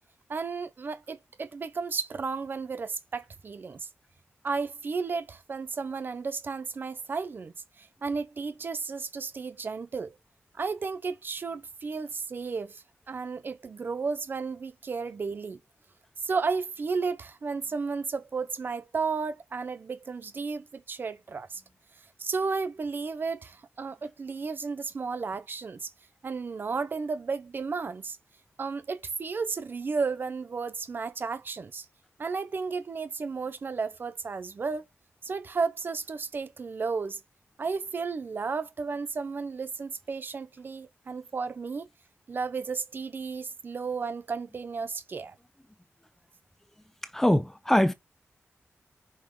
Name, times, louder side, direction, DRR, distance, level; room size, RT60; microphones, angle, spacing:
voice 1, 0.3-3.9 4.4-10.1 10.5-15.6 16.2-21.6 22.2-25.9 26.2-28.2 28.6-31.9 32.2-34.9 35.2-37.2 37.6-41.9 42.3-45.4, right 4 dB, 50° right, 0.8 m, -33 dB
voice 2, 47.1-47.9, left 1 dB, 5° left, 0.8 m, -22 dB
5.6 x 5.4 x 4.8 m
wide cardioid pair, 160°, 5 cm